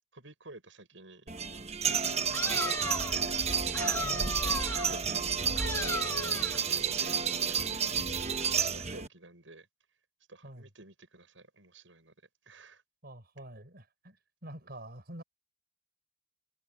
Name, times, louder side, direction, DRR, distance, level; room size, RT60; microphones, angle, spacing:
voice 1, 0.1-1.3 1.8-3.4 4.5-8.0 8.4-9.7 10.3-12.1 12.4-12.8, right 2 dB, 85° right, 7.3 m, -49 dB
sound 1, 1.3-9.1, right 6 dB, 35° right, 1.2 m, -30 dB
sound 2, 2.3-3.2 3.7-5.0 5.6-6.6, left 3 dB, 15° left, 2.3 m, -37 dB
voice 2, 4.0-4.4 10.4-10.7 13.0-14.2 14.4-15.2, right 1 dB, 55° right, 5.8 m, -46 dB
head